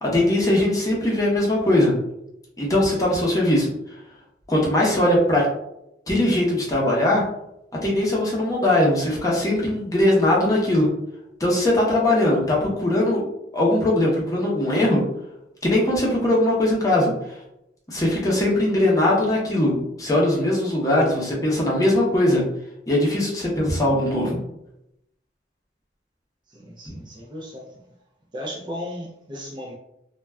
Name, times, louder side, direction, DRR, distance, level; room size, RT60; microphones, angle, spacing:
voice 1, 0.0-1.9 2.6-3.7 4.5-5.4 6.1-7.2 7.8-10.9 11.4-13.2 13.5-15.0 15.6-17.4 17.9-22.4 22.9-24.4 26.9-27.0, left 1 dB, 20° left, -4 dB, 0.6 m, -20 dB
voice 2, 26.5-27.8 28.3-29.7, equal, 25° right, -2 dB, 0.3 m, -35 dB
2.2 x 2.1 x 3.4 m, 0.82 s
head